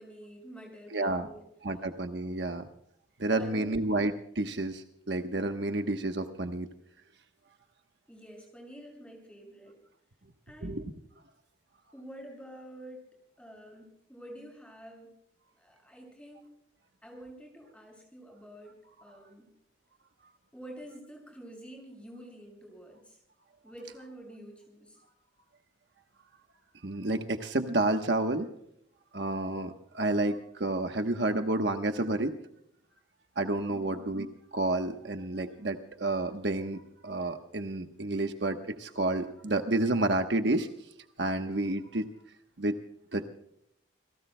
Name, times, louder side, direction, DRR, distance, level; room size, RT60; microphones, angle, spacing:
voice 1, 0.0-1.5 3.4-3.8 8.1-9.7 10.5-10.8 11.9-13.0 13.4-15.1 15.6-16.5 17.0-19.5 20.5-23.2 23.6-25.0, right 1 dB, 5° left, 1 dB, 6.8 m, -48 dB
voice 2, 0.9-1.3 1.6-2.6 3.2-6.7 10.6-10.8 26.8-28.5 29.1-32.3 33.4-34.3 34.5-40.7 41.2-42.1 42.6-42.7 43.1-43.3, right 2 dB, 65° right, 6 dB, 1.1 m, -30 dB
29.5 x 17.5 x 2.2 m, 0.72 s
head